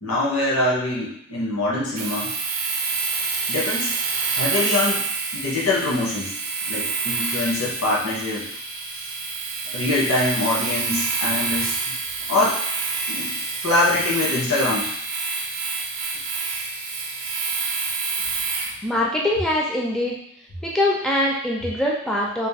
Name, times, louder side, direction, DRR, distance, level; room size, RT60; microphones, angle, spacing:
voice 1, 0.0-2.3 3.5-3.9 4.4-5.0 5.3-6.3 6.7-8.4 9.7-11.7 12.3-12.6 13.1-13.3 13.6-14.9, left 2 dB, 90° left, -5 dB, 1.3 m, -23 dB
Domestic sounds home sounds, 2.0-18.8, right 4 dB, 70° right, 0.5 m, -27 dB
voice 2, 18.8-20.2 20.6-22.5, left 1 dB, ahead, -3 dB, 0.3 m, -23 dB
3.3 x 2.5 x 3.4 m, 0.70 s
head